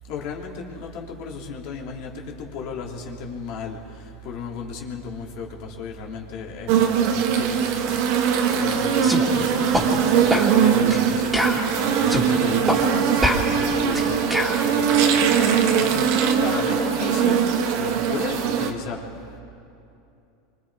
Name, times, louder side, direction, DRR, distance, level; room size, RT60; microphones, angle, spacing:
voice 1, 0.1-3.8 4.2-8.0 8.5-11.6 12.1-15.1 15.3-16.0 16.4-17.4 17.7-19.0, left 5 dB, 60° left, -1 dB, 3.2 m, -34 dB
sound 1, 6.7-18.7, right 7 dB, 65° right, 1.8 m, -21 dB
sound 2, 9.0-9.2 9.7-9.9 10.3-10.5 10.9-11.0 11.3-12.3 12.7-12.8 13.2-14.6, equal, 5° right, 3.2 m, -24 dB
28.5 x 24.5 x 5.0 m, 2.7 s
supercardioid pair, 130°, 0 cm